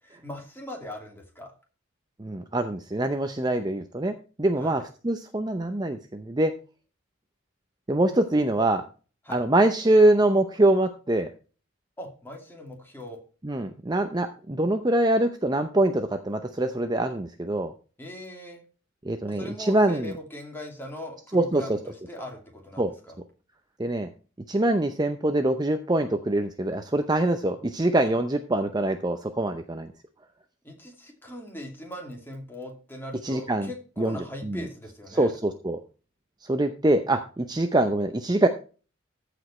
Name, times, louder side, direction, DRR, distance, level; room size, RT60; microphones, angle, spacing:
voice 1, 0.0-1.5 4.6-4.8 9.2-9.4 12.0-13.2 18.0-18.6 19.3-23.2 30.6-35.4, left 1 dB, 10° left, 1 dB, 2.5 m, -40 dB
voice 2, 2.2-6.5 7.9-8.9 9.3-11.3 13.4-17.7 19.0-20.1 21.3-21.6 22.8-22.9 23.8-24.1 24.5-29.9 33.2-33.7 34.0-34.2 34.4-34.6 35.1-35.8 36.5-38.5, right 1 dB, 20° right, 7 dB, 0.6 m, -24 dB
14.5 x 5.1 x 4.3 m, 0.36 s
head